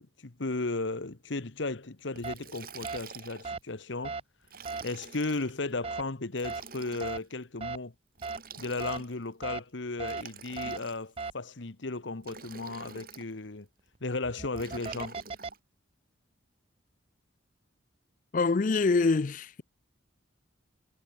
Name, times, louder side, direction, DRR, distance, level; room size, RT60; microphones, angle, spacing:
voice 1, 0.0-4.2 4.8-7.9 8.6-13.7 14.0-15.2, left 3 dB, 75° left, 1.3 m, -35 dB
sound 1, 2.2-2.4 2.8-3.0 3.4-3.6 4.0-4.2 4.7-4.8 5.8-6.0 6.4-6.6 7.0-7.2 7.6-7.8 8.2-8.4 8.8-9.0 9.4-9.6 10.0-10.2 10.6-10.8 11.2-11.3 14.2-15.5, right 4 dB, 30° right, 0.5 m, -36 dB
Liquid, 2.2-3.6 4.4-5.5 6.3-7.2 8.1-9.3 10.0-11.2 12.2-13.3 14.6-15.6, right 5 dB, 50° right, 4.0 m, -47 dB
voice 2, 18.3-19.6, left 3 dB, 40° left, 0.4 m, -25 dB
head